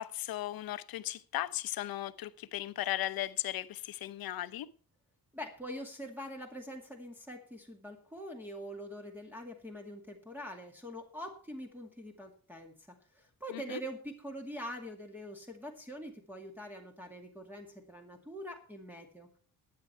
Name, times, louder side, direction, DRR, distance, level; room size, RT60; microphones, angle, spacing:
voice 1, 0.0-4.7 13.7-13.8, left 14 dB, 90° left, 0.8 m, -36 dB
voice 2, 5.3-12.7 13.1-19.3, equal, 5° right, 2.2 m, -44 dB
15.0 x 9.6 x 4.4 m
cardioid pair, 100°, 35 cm